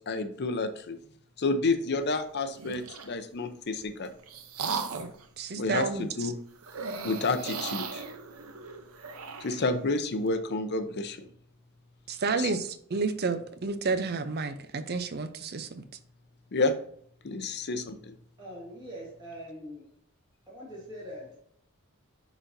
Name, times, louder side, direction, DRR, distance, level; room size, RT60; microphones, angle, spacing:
voice 1, 0.1-1.0 1.4-4.1 5.6-6.4 7.0-8.0 9.4-11.2 12.4-12.5 16.5-16.7 17.2-18.1, left 3 dB, 50° left, 0.6 m, -30 dB
sound 1, 2.5-3.1 3.8-5.2 6.6-9.7, right 5 dB, 85° right, 0.7 m, -37 dB
voice 2, 5.4-6.1 12.1-15.8, right 4 dB, 50° right, 0.6 m, -30 dB
voice 3, 18.4-19.9 20.5-21.4, equal, 20° right, 2.0 m, -42 dB
10.0 x 4.0 x 2.7 m
head